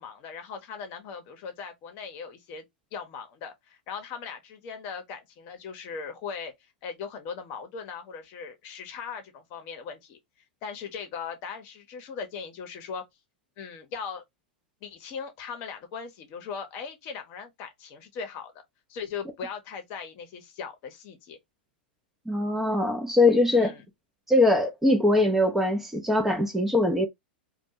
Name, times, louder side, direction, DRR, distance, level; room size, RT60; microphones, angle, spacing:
voice 1, 0.0-2.6 2.9-6.5 6.8-10.2 10.6-13.0 13.6-14.2 14.8-18.5 18.9-21.4 23.5-23.9, left 6 dB, 45° left, 0.8 m, -39 dB
voice 2, 22.3-23.7 24.3-27.1, left 2 dB, 5° right, 0.5 m, -22 dB
2.2 x 2.2 x 2.7 m
hypercardioid pair, 110°, 6 cm